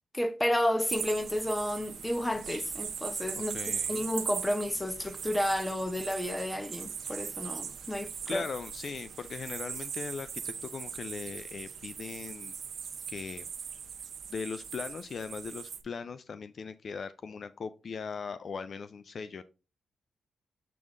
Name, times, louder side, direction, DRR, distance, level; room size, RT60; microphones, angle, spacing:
voice 1, 0.1-3.5 3.9-8.4, left 1 dB, 10° left, 0.9 m, -31 dB
sound 1, 0.9-15.8, right 7 dB, 65° right, 0.8 m, -39 dB
voice 2, 3.5-4.0 8.3-12.6 13.1-13.5 14.3-19.4, left 5 dB, 55° left, 0.4 m, -39 dB
7.5 x 3.7 x 3.7 m
cardioid pair, 60°, 0 cm